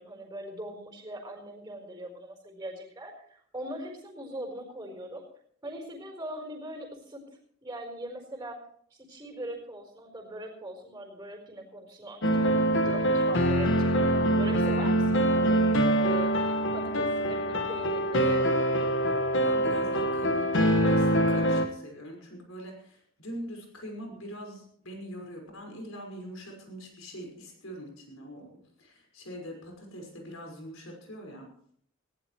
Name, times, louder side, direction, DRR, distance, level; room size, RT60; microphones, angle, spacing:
voice 1, 0.0-5.2 5.6-7.2 7.6-8.6 8.9-18.5, right 1 dB, 15° right, 1 dB, 4.5 m, -41 dB
sound 1, 12.2-21.7, right 1 dB, 65° left, 1.6 m, -24 dB
voice 2, 19.4-28.5 28.8-31.5, equal, 80° left, 2 dB, 5.6 m, -43 dB
19.0 x 15.5 x 3.2 m, 0.63 s
head